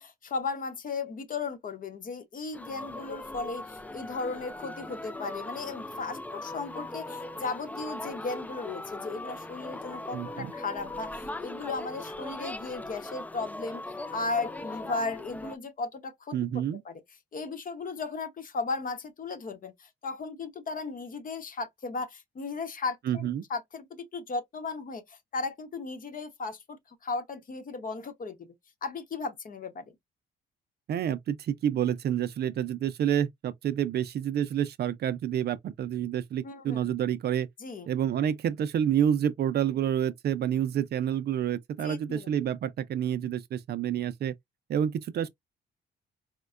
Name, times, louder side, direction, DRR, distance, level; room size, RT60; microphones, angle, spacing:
voice 1, 0.0-16.4 16.8-17.0 17.3-28.5 28.8-29.8 36.4-36.9 37.6-37.9 41.8-42.3, left 4 dB, 45° left, 0.9 m, -36 dB
sound 1, 2.5-15.6, left 2 dB, 10° left, 0.3 m, -40 dB
voice 2, 10.1-10.5 16.3-16.8 23.1-23.4 30.9-37.5 37.9-44.3 44.7-45.3, right 9 dB, 55° right, 0.4 m, -28 dB
4.3 x 2.1 x 2.4 m
cardioid pair, 90°, 20 cm